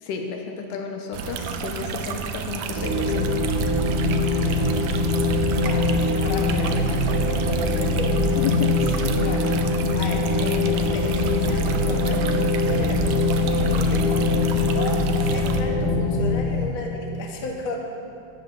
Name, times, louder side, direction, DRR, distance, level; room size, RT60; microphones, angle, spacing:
voice 1, 0.0-3.3 8.4-9.1 9.5-9.6, left 5 dB, 80° left, 3 dB, 2.3 m, -32 dB
sound 1, 1.1-15.6, right 6 dB, 85° right, 1.5 m, -32 dB
sound 2, 2.7-16.4, left 2 dB, 45° right, 1.3 m, -22 dB
voice 2, 4.4-8.3 9.2-9.5 9.9-14.2 14.7-17.8, left 2 dB, 50° left, 0 dB, 1.7 m, -35 dB
12.5 x 8.4 x 6.1 m, 2.6 s
omnidirectional pair, 3.8 m